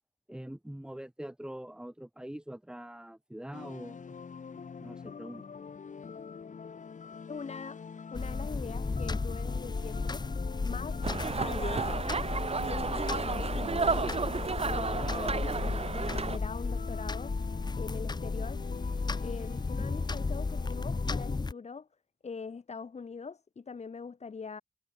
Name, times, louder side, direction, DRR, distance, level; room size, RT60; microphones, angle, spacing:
voice 1, 0.3-4.2 4.5-5.4 15.0-15.3, right 1 dB, 5° right, 3.0 m, -44 dB
sound 1, 3.5-21.4, left 6 dB, 80° left, 5.7 m, -44 dB
voice 2, 7.3-7.8 8.1-10.3 10.6-11.0 11.4-12.1 12.7-17.4 17.8-18.6 19.2-21.9 22.2-24.6, left 5 dB, 60° left, 2.9 m, -42 dB
sound 2, 8.1-21.5, left 3 dB, 35° left, 1.0 m, -34 dB
sound 3, 11.0-16.4, right 4 dB, 55° right, 2.8 m, -32 dB
wide cardioid pair, 120°, 13 cm